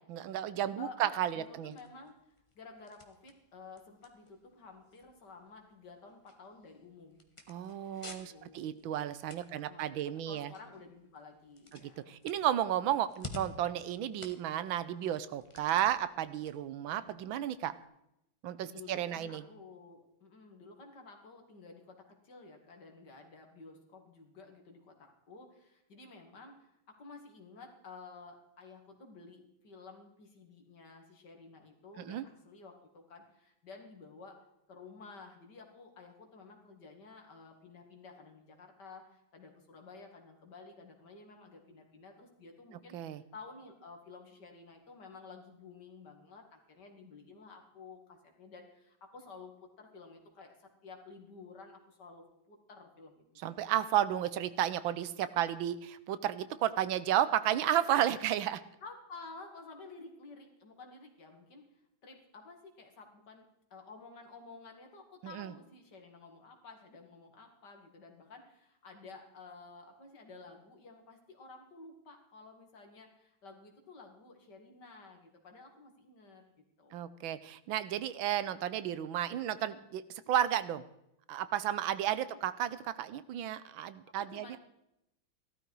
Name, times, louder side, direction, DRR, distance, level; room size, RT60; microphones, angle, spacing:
voice 1, 0.1-1.7 7.5-10.5 11.7-17.7 18.4-19.4 32.0-32.2 42.9-43.2 53.4-58.6 65.2-65.5 76.9-80.0 80.3-80.8 81.3-84.6, right 11 dB, 80° right, 14 dB, 1.5 m, -33 dB
voice 2, 0.8-2.2 2.6-7.2 8.3-8.7 9.5-12.1 18.7-34.4 34.7-53.2 58.8-61.6 62.0-63.4 63.7-76.4 76.8-77.1 82.3-82.4 84.2-84.6, left 4 dB, 55° left, 3 dB, 2.7 m, -52 dB
sound 1, 0.9-17.8, left 2 dB, 20° left, 1.0 m, -54 dB
15.5 x 13.0 x 4.7 m, 0.82 s
omnidirectional pair, 2.2 m